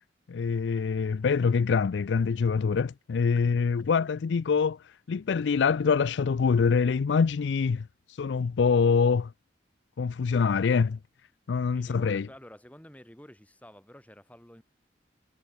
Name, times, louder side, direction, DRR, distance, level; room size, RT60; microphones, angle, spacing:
voice 1, 0.3-4.8 5.1-7.9 8.2-9.3 10.0-11.0 11.5-12.3, left 5 dB, 80° left, 0.4 m, -25 dB
voice 2, 11.7-14.6, equal, 10° left, 2.6 m, -50 dB
head